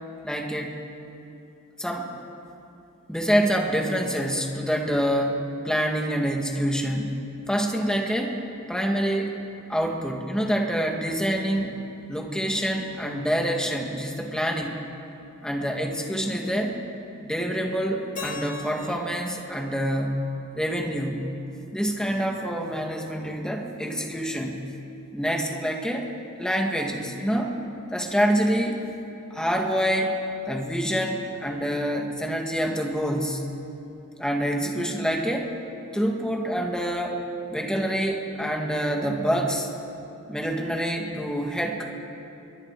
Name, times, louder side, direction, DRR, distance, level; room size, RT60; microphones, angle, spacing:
voice 1, 0.2-0.8 1.8-2.1 3.1-8.3 8.7-9.4 9.7-11.8 12.1-14.8 15.4-16.8 17.2-20.3 20.6-21.3 21.7-24.6 25.1-26.1 26.4-27.5 27.9-28.8 29.3-30.1 30.5-33.4 34.2-35.5 35.9-37.2 37.5-39.7 40.3-41.8, equal, 5° left, 1 dB, 2.3 m, -26 dB
Keyboard (musical), 18.2-21.1, left 3 dB, 35° left, 2.0 m, -41 dB
27.5 x 23.0 x 5.0 m, 2.9 s
head